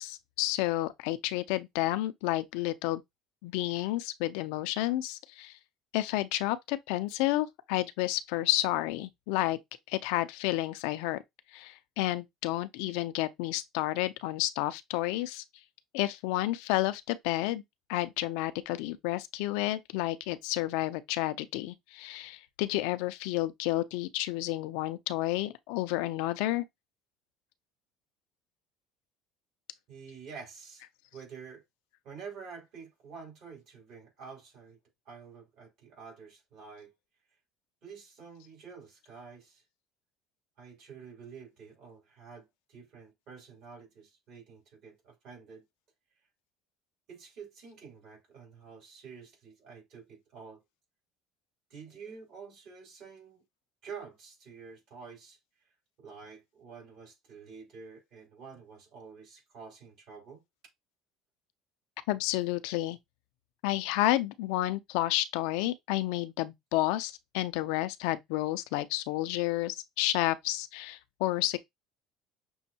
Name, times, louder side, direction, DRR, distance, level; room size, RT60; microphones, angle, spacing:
voice 1, 0.0-3.0 3.4-5.6 5.9-9.6 9.9-11.2 11.5-15.4 15.9-17.6 17.9-26.6 62.1-63.0 63.6-71.6, left 16 dB, 80° left, 0.4 m, -31 dB
voice 2, 29.9-30.8 31.1-31.6 32.0-34.8 35.0-36.9 37.8-39.6 40.6-45.6 47.1-50.6 51.7-53.4 53.8-55.4 56.0-60.4, right 5 dB, 65° right, 3.4 m, -48 dB
6.2 x 2.2 x 2.8 m
supercardioid pair, 105°, 0 cm